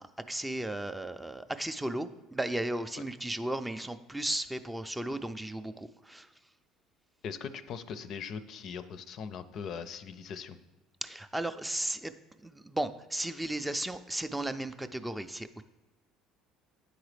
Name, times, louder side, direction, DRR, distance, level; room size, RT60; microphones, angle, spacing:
voice 1, 0.0-6.3 11.0-12.1 12.4-15.6, right 1 dB, 10° right, 10 dB, 0.4 m, -35 dB
voice 2, 7.2-10.6, left 6 dB, 55° left, 12 dB, 0.4 m, -40 dB
9.4 x 3.9 x 3.3 m, 1.2 s
supercardioid pair, 85°, 0 cm